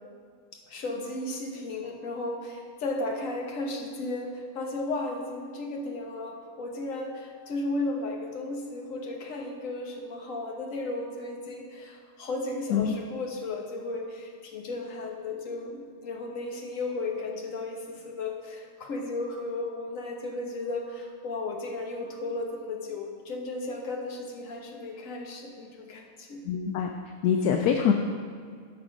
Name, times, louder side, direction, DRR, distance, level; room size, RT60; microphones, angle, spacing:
voice 1, 0.7-26.4, left 2 dB, 55° left, 1 dB, 1.5 m, -34 dB
voice 2, 26.4-26.9 27.2-27.9, left 7 dB, 75° left, 4 dB, 1.1 m, -24 dB
13.0 x 5.6 x 5.0 m, 2.1 s
omnidirectional pair, 1.7 m